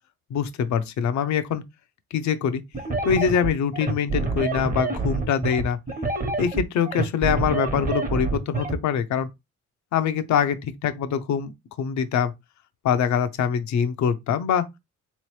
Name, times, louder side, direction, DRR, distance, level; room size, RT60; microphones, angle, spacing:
voice 1, 0.3-1.6 2.1-2.6 3.0-5.8 6.4-9.3 9.9-11.5 11.8-12.3 12.8-14.7, left 8 dB, 70° left, 0.7 m, -24 dB
sound 1, 2.7-8.8, right 3 dB, 30° right, 1.0 m, -27 dB
3.5 x 3.1 x 3.2 m
cardioid pair, 90°, 30 cm